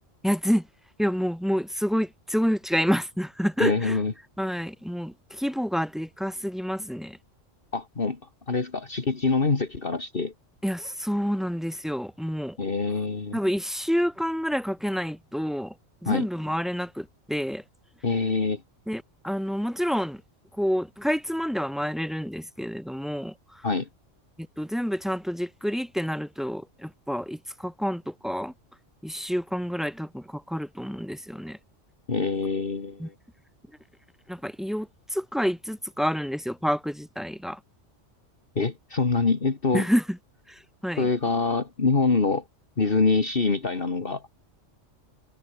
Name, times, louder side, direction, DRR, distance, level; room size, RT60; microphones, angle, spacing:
voice 1, 0.2-0.7 1.0-4.0 4.4-7.2 10.6-12.6 13.3-15.7 16.0-17.6 18.9-20.2 20.5-23.7 24.4-28.5 29.0-31.6 33.0-33.1 34.3-37.6 39.7-40.2 40.5-41.1, equal, ahead, 6.3 m, -28 dB
voice 2, 3.6-4.1 7.7-8.2 8.5-10.3 12.6-13.4 16.1-16.3 18.0-18.6 23.6-23.9 32.1-33.1 38.6-39.8 41.0-42.4 42.8-44.2, left 4 dB, 45° left, 2.2 m, -25 dB
omnidirectional pair, 1.3 m